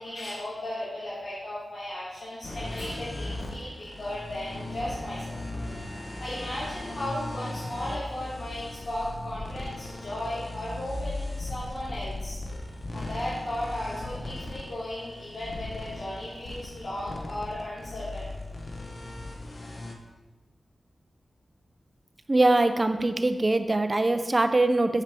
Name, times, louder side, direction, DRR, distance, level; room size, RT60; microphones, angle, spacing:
voice 1, 0.0-5.4 6.2-12.4 12.9-18.3, left 1 dB, 80° left, -11 dB, 1.9 m, -35 dB
sound 1, 2.4-20.0, left 2 dB, 45° left, 0.8 m, -38 dB
voice 2, 22.3-25.0, right 2 dB, 30° right, 8 dB, 0.4 m, -22 dB
6.2 x 5.6 x 3.4 m, 1.2 s
wide cardioid pair, 105°, 0 cm